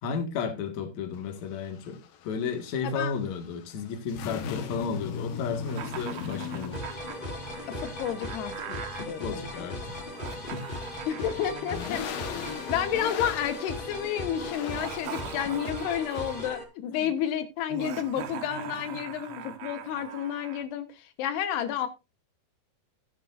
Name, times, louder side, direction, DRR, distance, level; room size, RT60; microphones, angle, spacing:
voice 1, 0.0-6.9 9.0-10.1 10.5-10.7 15.4-15.5 16.9-17.1, left 5 dB, 55° left, 2.8 m, -33 dB
sound 1, 1.1-15.3, left 7 dB, 70° left, 2.9 m, -40 dB
voice 2, 2.8-3.2 7.7-9.7 11.1-12.0 12.7-21.9, left 9 dB, 85° left, 3.2 m, -31 dB
Laughter, 5.7-9.1 10.0-13.3 14.6-16.6 17.7-20.6, right 9 dB, 75° right, 3.2 m, -42 dB
sound 2, 6.7-16.6, left 1 dB, 30° left, 0.9 m, -38 dB
15.0 x 10.5 x 2.6 m
omnidirectional pair, 4.6 m